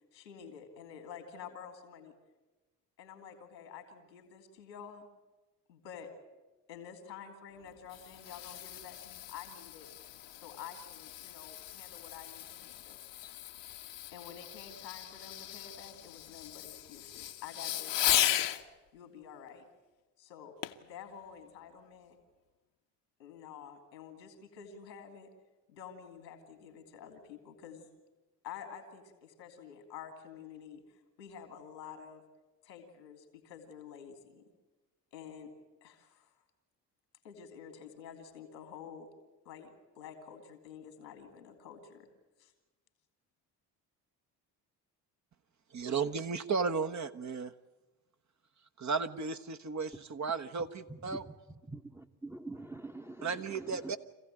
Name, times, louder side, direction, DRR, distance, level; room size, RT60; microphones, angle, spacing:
voice 1, 0.1-2.1 3.0-5.1 5.7-6.1 6.7-9.9 10.3-13.0 14.1-18.6 18.9-19.7 20.2-22.2 23.2-25.3 25.7-27.9 28.4-32.2 32.6-34.5 35.1-35.5 35.8-36.3 37.2-39.1 39.4-42.1 42.4-42.5, left 7 dB, 90° left, 5 dB, 2.8 m, -49 dB
Fireworks, 7.6-18.6 20.6-20.9 21.5-21.6, left 12 dB, 60° left, 1.2 m, -37 dB
voice 2, 45.7-47.5 48.8-51.2 53.2-54.0, right 5 dB, 35° right, 9 dB, 1.1 m, -34 dB
voice 3, 51.7-54.0, right 2 dB, 5° right, 4 dB, 1.1 m, -45 dB
25.0 x 15.5 x 9.1 m, 1.1 s
hypercardioid pair, 50°, 49 cm